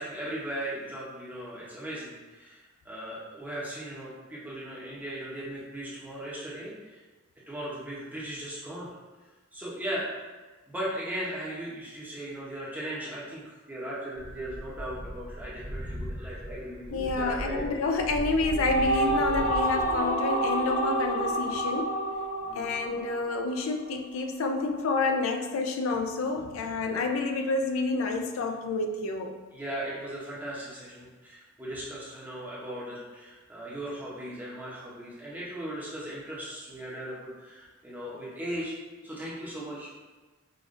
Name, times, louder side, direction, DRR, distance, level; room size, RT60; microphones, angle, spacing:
voice 1, 0.0-7.0 7.5-8.9 9.5-10.2 10.7-17.7 22.4-22.7 29.5-38.7 39.0-40.0, right 1 dB, 10° right, -8 dB, 0.7 m, -37 dB
sound 1, 14.1-20.0, equal, 75° right, 1.2 m, -38 dB
voice 2, 16.9-22.0 22.5-29.3, left 3 dB, 70° left, 5 dB, 0.4 m, -29 dB
sound 2, 18.2-23.7, right 1 dB, 35° left, 0.7 m, -29 dB
5.1 x 2.4 x 2.5 m, 1.2 s
head